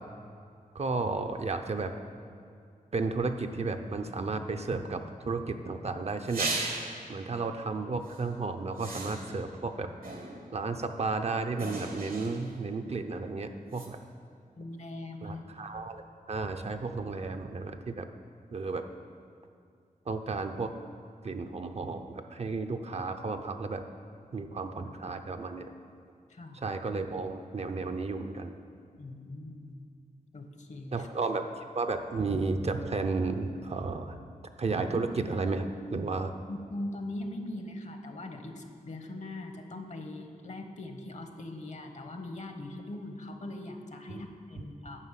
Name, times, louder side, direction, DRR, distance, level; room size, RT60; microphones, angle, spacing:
voice 1, 0.7-1.9 2.9-6.5 7.1-9.9 10.5-14.0 15.2-16.0 16.3-18.1 18.5-18.8 20.1-20.7 21.2-23.8 24.3-25.7 26.6-28.5 30.9-31.4 31.8-34.2 34.6-36.3 44.1-44.2, right 3 dB, 45° right, 7 dB, 0.6 m, -33 dB
sound 1, 6.2-7.2 8.1-8.2 8.8-9.5 10.0-10.6 11.6-12.6 13.7-13.9, right 3 dB, 75° right, 1.3 m, -36 dB
voice 2, 14.6-15.7 26.3-26.6 29.0-29.9 30.3-31.1 36.5-45.0, left 1 dB, 50° left, 5 dB, 0.9 m, -41 dB
9.7 x 5.6 x 7.3 m, 2.4 s
wide cardioid pair, 105°, 15 cm